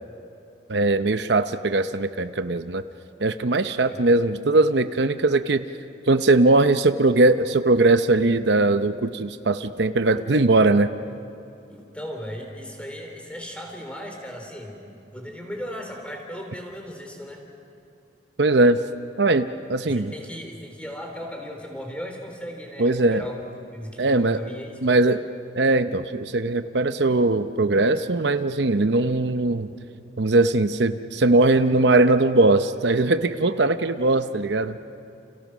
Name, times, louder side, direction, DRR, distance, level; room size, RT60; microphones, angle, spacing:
voice 1, 0.7-2.8 3.2-5.6 6.1-10.9 18.4-18.8 19.2-20.1 22.8-23.2 24.0-24.4 24.8-25.2 25.5-29.7 30.2-34.8, right 2 dB, 70° right, 10 dB, 0.8 m, -20 dB
voice 2, 11.7-17.4 19.8-23.4 23.7-25.0, equal, 5° left, 2 dB, 3.8 m, -37 dB
30.0 x 29.5 x 6.2 m, 2.7 s
head